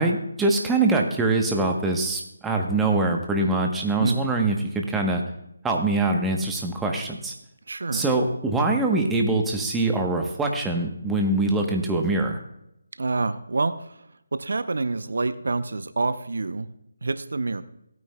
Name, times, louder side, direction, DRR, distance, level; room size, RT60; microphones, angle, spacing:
voice 1, 0.0-5.2 5.6-7.3 7.9-12.4, right 2 dB, 5° right, 1 dB, 1.0 m, -23 dB
voice 2, 7.7-8.0 13.0-14.0 14.3-16.7 17.0-17.6, right 3 dB, 70° right, 12 dB, 0.6 m, -27 dB
17.0 x 9.3 x 2.2 m, 0.84 s
figure-of-eight pair, 155°, 0 cm